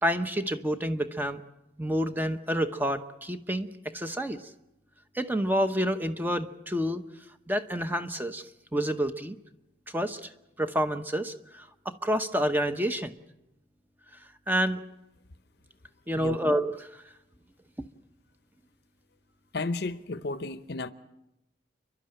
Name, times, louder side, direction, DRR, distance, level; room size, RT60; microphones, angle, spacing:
voice 1, 0.0-1.4 1.8-3.7 3.9-4.4 5.1-7.0 7.5-9.4 9.9-10.3 10.6-13.1 14.5-14.8 16.1-17.0, equal, 10° right, 0.9 m, -28 dB
voice 2, 19.5-20.9, left 3 dB, 60° left, 0.8 m, -33 dB
29.5 x 12.0 x 8.9 m
head